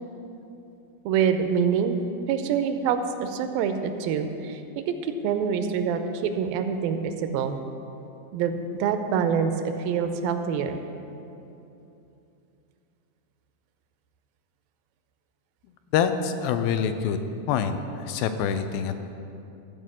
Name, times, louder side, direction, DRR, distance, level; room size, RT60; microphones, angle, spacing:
voice 1, 1.1-2.0 2.3-4.6 4.9-5.0 5.2-7.6 8.3-10.8, right 7 dB, 80° right, 8 dB, 2.4 m, -26 dB
voice 2, 15.9-17.2 17.5-19.0, left 7 dB, 90° left, 9 dB, 2.4 m, -25 dB
14.0 x 5.1 x 7.5 m, 2.8 s
omnidirectional pair, 4.2 m